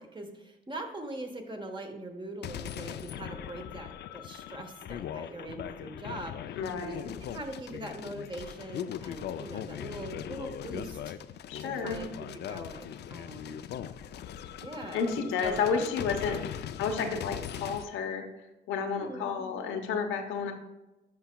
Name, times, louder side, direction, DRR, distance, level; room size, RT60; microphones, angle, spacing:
voice 1, 0.0-6.3 6.8-11.2 11.6-12.1 12.5-13.7 14.6-15.8 17.0-17.3 19.0-19.4, right 1 dB, 25° right, 4 dB, 1.1 m, -42 dB
sound 1, 2.4-17.9, left 10 dB, 60° left, 0.4 m, -40 dB
voice 2, 6.6-7.1 11.5-12.0 14.9-18.2 18.7-20.5, left 6 dB, 85° left, 4 dB, 0.9 m, -31 dB
10.5 x 5.4 x 2.2 m, 1.0 s
cardioid pair, 90°, 20 cm